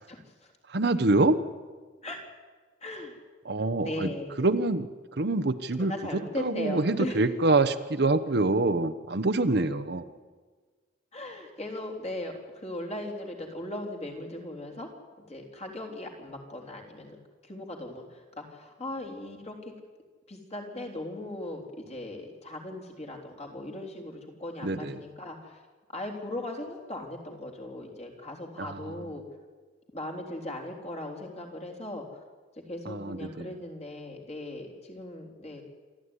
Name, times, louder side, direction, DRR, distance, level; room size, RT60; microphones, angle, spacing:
voice 1, 0.1-0.5 2.0-2.2 2.8-3.2 3.8-4.4 5.8-7.2 11.1-14.9 15.3-17.2 17.4-19.7 20.3-25.6 25.9-29.2 29.9-32.2 32.7-35.6, left 1 dB, 35° left, 2 dB, 3.7 m, -38 dB
voice 2, 0.7-1.4 3.4-4.1 4.4-10.1 24.6-25.0 28.6-29.0 32.9-33.5, right 2 dB, 65° right, 10 dB, 1.0 m, -26 dB
27.0 x 13.0 x 9.8 m, 1.4 s
head